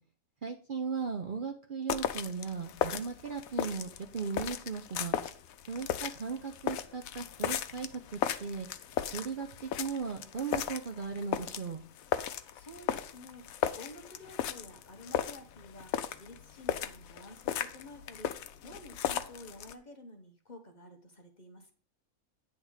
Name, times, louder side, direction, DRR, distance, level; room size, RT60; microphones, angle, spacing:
voice 1, 0.4-5.2 5.7-8.7 9.1-9.5 9.8-11.8, right 5 dB, 45° right, 3 dB, 0.7 m, -37 dB
sound 1, 1.9-19.7, left 10 dB, 80° left, 1.0 m, -36 dB
voice 2, 12.5-18.3 18.6-21.7, left 1 dB, 35° left, 3 dB, 1.1 m, -51 dB
9.6 x 3.5 x 6.3 m, 0.44 s
omnidirectional pair, 1.5 m